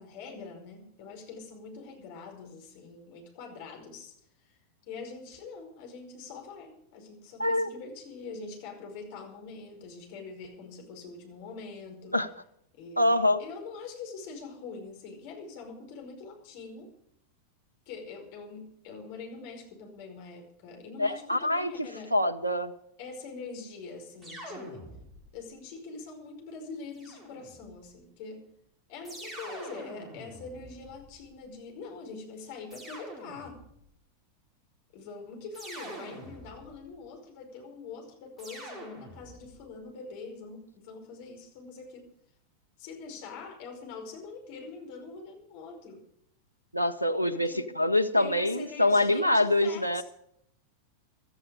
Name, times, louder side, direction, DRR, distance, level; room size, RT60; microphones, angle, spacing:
voice 1, 0.0-4.1 4.4-4.6 4.8-12.2 12.7-16.9 17.8-22.1 23.0-24.9 25.3-28.5 28.9-33.6 34.9-42.1 42.8-46.0 47.3-47.7 48.1-50.0, left 4 dB, 50° left, 3 dB, 5.1 m, -44 dB
voice 2, 13.0-13.4 21.0-21.7 22.1-22.7 46.7-50.0, left 1 dB, 90° right, 15 dB, 0.8 m, -25 dB
sound 1, 24.2-25.4 26.9-27.8 29.0-31.4 32.7-33.8 35.5-36.9 38.4-39.6, right 1 dB, 15° right, 6.1 m, -45 dB
16.0 x 13.5 x 5.1 m, 0.72 s
figure-of-eight pair, 90°, 0 cm